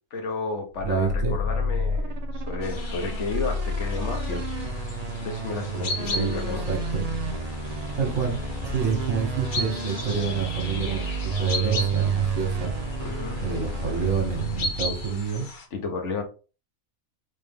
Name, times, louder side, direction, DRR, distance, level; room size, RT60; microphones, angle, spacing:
voice 1, 0.1-4.4 5.2-6.7 13.0-13.4 15.7-16.2, left 3 dB, 60° left, 4 dB, 1.2 m, -32 dB
sound 1, 0.7-15.3, right 1 dB, 40° right, 0.6 m, -30 dB
voice 2, 0.8-1.4 6.1-7.1 7.9-12.7 13.4-15.5, right 6 dB, 65° right, 2 dB, 1.6 m, -28 dB
sound 2, 2.6-15.7, left 2 dB, 45° left, 0.8 m, -37 dB
3.6 x 3.3 x 3.5 m, 0.34 s
omnidirectional pair, 1.4 m